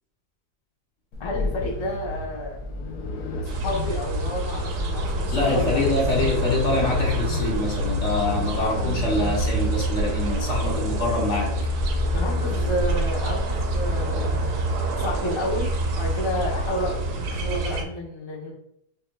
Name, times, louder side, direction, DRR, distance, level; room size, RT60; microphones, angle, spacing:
sound 1, 1.1-17.1, left 2 dB, 70° left, 1.1 m, -34 dB
voice 1, 1.2-2.6 3.4-5.8 12.1-14.5 15.0-18.5, equal, 30° left, -3 dB, 0.5 m, -30 dB
sound 2, 3.4-17.8, right 1 dB, 80° right, 1.2 m, -26 dB
voice 2, 5.3-11.5, left 2 dB, 55° left, -2 dB, 1.0 m, -25 dB
5.5 x 2.6 x 2.2 m, 0.78 s
omnidirectional pair, 1.7 m